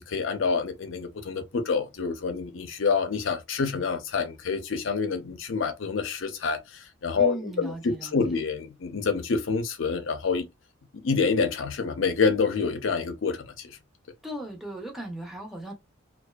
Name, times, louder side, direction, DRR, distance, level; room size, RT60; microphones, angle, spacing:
voice 1, 0.0-10.5 11.0-13.8, left 5 dB, 70° left, 0.5 m, -27 dB
voice 2, 7.2-8.4 14.2-15.7, right 1 dB, ahead, 0.5 m, -37 dB
2.5 x 2.2 x 2.2 m
head